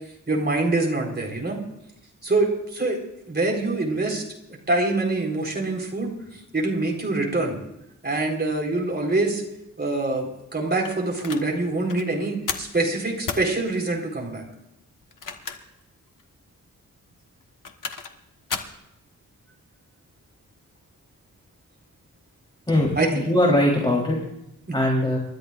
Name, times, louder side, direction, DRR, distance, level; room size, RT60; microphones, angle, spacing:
voice 1, 0.3-1.6 2.2-3.0 3.3-4.2 4.7-6.1 6.5-7.6 8.0-9.4 9.8-14.4 23.0-23.2 24.7-24.8, right 2 dB, 30° right, -1 dB, 4.3 m, -25 dB
sound 1, 10.9-11.5 11.9-12.1 12.5-12.8 13.3-13.5 15.0-15.8 16.2-16.3 17.4-18.2 18.5-18.8, left 5 dB, 70° left, 1.4 m, -33 dB
voice 2, 22.7-24.2 24.7-25.2, left 1 dB, 15° left, -3 dB, 3.6 m, -21 dB
29.0 x 13.5 x 2.5 m, 0.84 s
wide cardioid pair, 115°, 33 cm